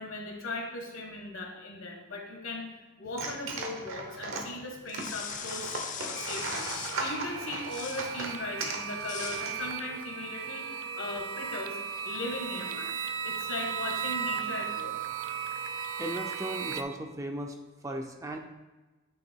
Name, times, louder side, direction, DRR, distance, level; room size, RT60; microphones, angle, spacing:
voice 1, 0.0-2.7 3.0-11.8 12.0-12.9 13.2-14.9, left 2 dB, 65° left, 2 dB, 1.4 m, -38 dB
sound 1, 3.1-10.0, right 3 dB, 70° right, 1.0 m, -38 dB
sound 2, 4.9-7.1 7.6-8.1 9.0-9.5, left 7 dB, 35° left, 0.5 m, -39 dB
sound 3, 6.2-16.8, right 8 dB, 85° right, 0.4 m, -36 dB
voice 2, 16.0-17.6 17.8-18.4, right 1 dB, 15° right, 3 dB, 0.4 m, -36 dB
8.8 x 3.4 x 4.4 m, 1.2 s
head